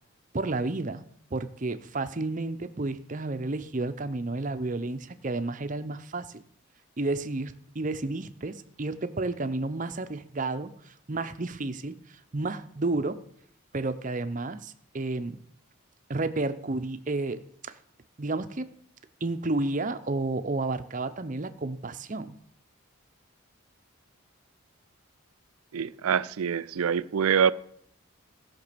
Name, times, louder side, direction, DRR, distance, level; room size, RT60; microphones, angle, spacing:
voice 1, 0.3-1.0 1.3-6.4 7.0-13.2 13.7-15.4 16.1-17.7 18.2-18.7 19.2-22.3, right 2 dB, 35° right, 0.6 m, -31 dB
voice 2, 25.7-27.5, right 7 dB, 85° right, 0.4 m, -25 dB
15.0 x 6.0 x 6.8 m
head